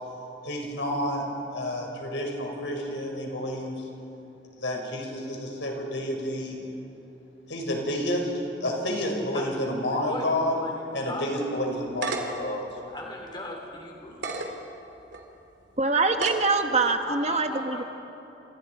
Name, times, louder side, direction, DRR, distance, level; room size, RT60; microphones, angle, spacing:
voice 1, 0.4-1.3 1.5-3.8 4.6-6.5 7.5-8.3 8.6-10.5 10.9-12.7, left 1 dB, 90° left, 0 dB, 5.7 m, -29 dB
voice 2, 9.3-10.3 10.6-11.5 12.9-14.4 17.1-17.8, left 2 dB, 25° left, 0 dB, 3.6 m, -38 dB
sound 1, 11.6-12.4 13.0-13.1 14.1-14.5 15.1-15.2 16.1-16.5, right 3 dB, 75° right, 2.7 m, -31 dB
voice 3, 15.8-17.8, right 3 dB, 35° right, 6 dB, 1.1 m, -24 dB
29.0 x 27.5 x 4.8 m, 2.9 s
head